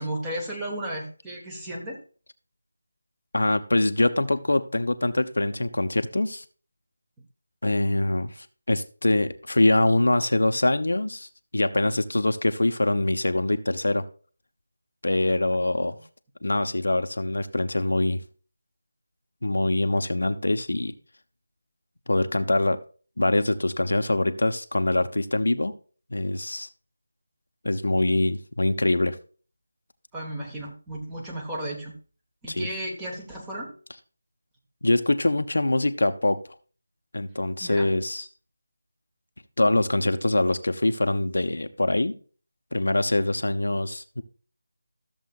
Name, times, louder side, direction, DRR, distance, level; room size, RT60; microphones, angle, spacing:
voice 1, 0.0-2.0 15.8-16.0 30.1-31.9 32.4-33.7 37.6-37.9 38.2-38.3, right 1 dB, 10° right, -2 dB, 1.4 m, -34 dB
voice 2, 3.3-6.4 7.6-11.3 11.5-14.0 15.0-16.0 16.4-18.2 19.4-20.9 22.1-22.8 23.2-25.7 26.1-26.7 27.6-29.2 32.5-32.7 34.8-36.4 37.1-38.2 39.6-42.2 42.7-44.2, left 2 dB, 75° left, 9 dB, 0.8 m, -24 dB
13.5 x 7.2 x 2.4 m, 0.38 s
figure-of-eight pair, 165°, 0 cm